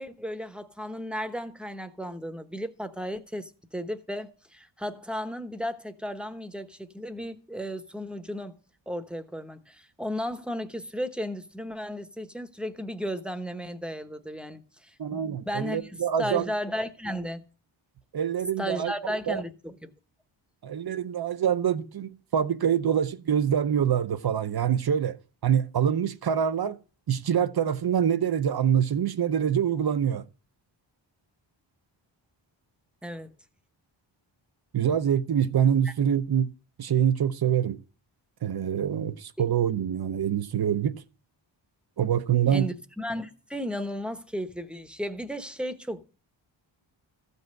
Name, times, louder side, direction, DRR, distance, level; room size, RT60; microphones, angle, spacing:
voice 1, 0.0-8.6 8.9-17.4 18.6-19.9 33.0-33.3 35.8-35.9 42.5-46.0, equal, ahead, 0.9 m, -34 dB
voice 2, 15.0-16.5 18.1-18.9 19.3-19.4 20.6-25.2 25.4-26.8 27.1-30.2 34.7-36.5 36.8-37.8 38.4-41.0 42.0-42.6, right 9 dB, 50° right, 0.7 m, -25 dB
14.5 x 5.4 x 7.7 m
wide cardioid pair, 130°, 47 cm